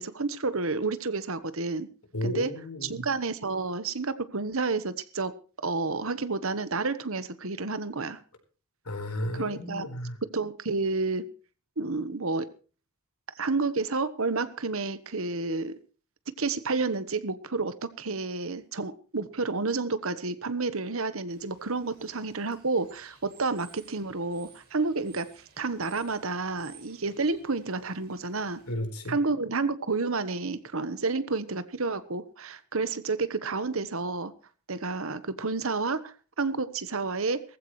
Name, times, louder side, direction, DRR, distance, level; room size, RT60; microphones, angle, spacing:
voice 1, 0.0-1.9 2.2-2.5 2.8-5.3 5.6-8.2 9.3-9.9 10.3-11.3 11.8-12.5 13.3-15.8 16.4-25.3 25.6-28.6 29.1-34.3 34.7-37.4, right 3 dB, 65° right, 14 dB, 1.2 m, -30 dB
voice 2, 2.1-3.1 8.8-10.2 28.7-29.2, left 1 dB, 90° left, 4 dB, 4.3 m, -33 dB
Bird / Water, 21.3-28.7, right 6 dB, 45° right, 6.5 m, -57 dB
19.0 x 15.0 x 3.2 m, 0.37 s
head